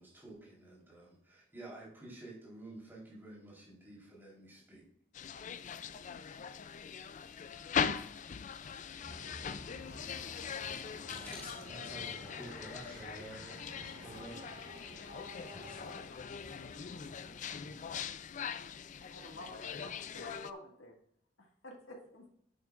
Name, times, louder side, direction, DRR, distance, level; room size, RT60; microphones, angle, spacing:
voice 1, 0.0-4.9, right 2 dB, 10° right, -5 dB, 3.9 m, -51 dB
sound 1, 5.1-20.5, left 7 dB, 40° left, 0.4 m, -41 dB
sound 2, 9.0-18.1, left 1 dB, 60° left, 3.1 m, -51 dB
voice 2, 11.1-13.5 13.7-14.4 15.5-15.9, equal, 10° left, -5 dB, 1.7 m, -49 dB
voice 3, 19.1-20.9 21.4-22.3, left 2 dB, 90° left, 1 dB, 2.0 m, -50 dB
11.5 x 9.1 x 2.5 m, 0.70 s
head